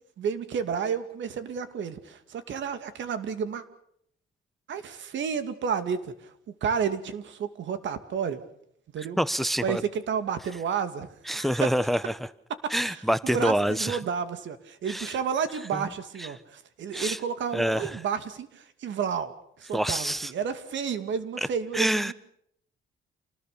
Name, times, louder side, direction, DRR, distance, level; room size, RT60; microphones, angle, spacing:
voice 1, 0.2-3.6 4.7-6.3 6.6-8.4 8.9-9.2 9.6-11.7 12.6-13.0 13.3-22.1, right 7 dB, 70° right, 10 dB, 2.6 m, -31 dB
voice 2, 9.2-9.8 11.3-12.1 12.7-14.0 14.9-15.1 15.7-15.8 16.2-16.3 16.9-17.2 17.5-18.0 19.7-20.3 21.7-22.1, equal, ahead, 16 dB, 0.9 m, -26 dB
28.5 x 19.5 x 6.9 m, 0.70 s
cardioid pair, 90°, 20 cm